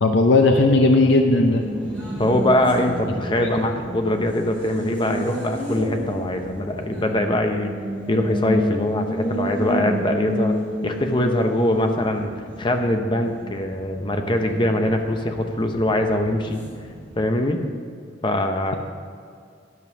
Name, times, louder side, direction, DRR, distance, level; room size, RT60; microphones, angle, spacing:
voice 1, 0.0-1.6 3.4-3.5, left 2 dB, 65° left, 4 dB, 0.6 m, -16 dB
Race car auto racing, 1.3-17.5, equal, 10° left, 2.6 m, -31 dB
voice 2, 2.2-7.7 8.1-10.5 10.8-12.3 12.6-16.6 17.2-17.6 18.2-18.7, left 1 dB, 25° left, 5 dB, 0.7 m, -22 dB
11.0 x 5.4 x 6.1 m, 2.2 s
head